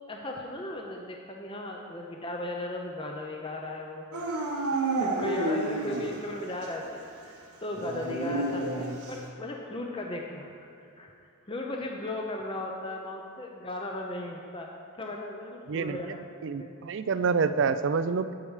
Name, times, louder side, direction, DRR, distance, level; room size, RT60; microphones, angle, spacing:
voice 1, 0.1-4.1 4.7-11.1 11.5-14.7 15.0-16.2 16.6-16.7, left 1 dB, 25° left, 1 dB, 0.6 m, -36 dB
Dog / Siren, 4.1-6.3 6.6-6.7 7.7-9.2, right 2 dB, 80° right, 1.2 m, -30 dB
voice 2, 15.7-16.2 16.4-18.3, right 5 dB, 55° right, 12 dB, 0.4 m, -27 dB
8.6 x 8.5 x 4.8 m, 2.6 s
head